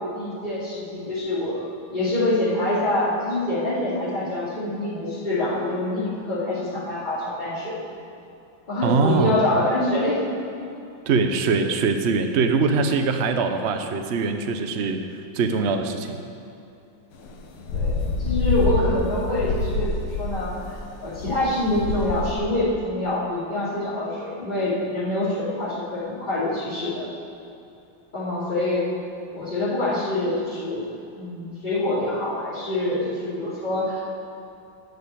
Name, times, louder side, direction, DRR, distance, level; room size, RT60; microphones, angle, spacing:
voice 1, 0.0-7.8 8.7-10.2 11.6-11.7 17.7-27.1 28.1-28.8 29.3-30.8 31.2-34.2, left 1 dB, 20° left, -12 dB, 2.9 m, -25 dB
voice 2, 8.8-9.4 11.1-15.0 15.3-16.2, right 4 dB, 70° right, 6 dB, 0.6 m, -22 dB
sound 1, 17.2-22.3, left 3 dB, 90° left, 1.9 m, -26 dB
11.5 x 6.7 x 8.3 m, 2.7 s
omnidirectional pair, 2.3 m